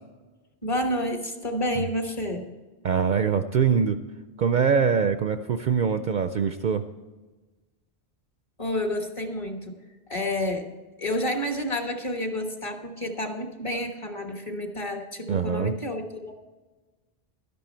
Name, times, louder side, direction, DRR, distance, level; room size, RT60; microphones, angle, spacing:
voice 1, 0.6-2.5 8.6-9.8 10.1-10.7 11.0-16.3, left 1 dB, 30° left, 4 dB, 1.4 m, -29 dB
voice 2, 2.8-4.0 4.4-6.8 15.3-15.7, right 6 dB, 55° right, 9 dB, 0.6 m, -23 dB
12.0 x 11.0 x 4.4 m, 1.3 s
omnidirectional pair, 1.1 m